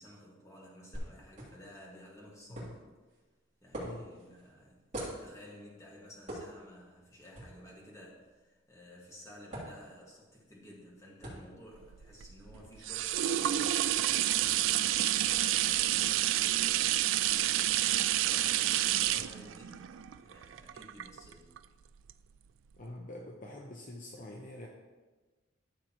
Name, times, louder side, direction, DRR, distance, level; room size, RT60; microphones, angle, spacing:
voice 1, 0.0-2.8 3.6-4.8 5.2-17.7 18.2-21.5, equal, 15° left, -4 dB, 1.9 m, -54 dB
sound 1, 0.9-18.6, right 1 dB, 35° right, 3.2 m, -49 dB
sound 2, 11.8-21.6 22.1-22.2, right 13 dB, 80° right, 0.3 m, -29 dB
voice 2, 22.8-24.7, left 1 dB, 45° left, 0 dB, 0.8 m, -45 dB
13.0 x 6.7 x 3.0 m, 1.3 s
head